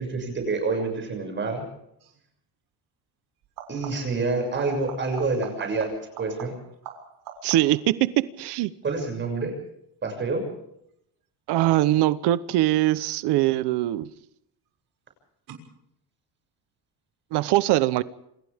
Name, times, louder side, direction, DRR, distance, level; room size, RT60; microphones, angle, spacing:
voice 1, 0.0-1.6 3.7-6.5 8.8-9.5 10.0-10.4, right 3 dB, 30° right, 4 dB, 6.7 m, -27 dB
sound 1, 2.0-2.3 3.4-4.2 4.6-7.9 13.4-14.0 15.5-15.6, right 7 dB, 65° right, 6.7 m, -43 dB
voice 2, 7.4-8.7 11.5-14.1 17.3-18.0, right 15 dB, 80° right, 15 dB, 1.0 m, -22 dB
28.0 x 27.5 x 3.6 m, 0.76 s
cardioid pair, 165°, 40 cm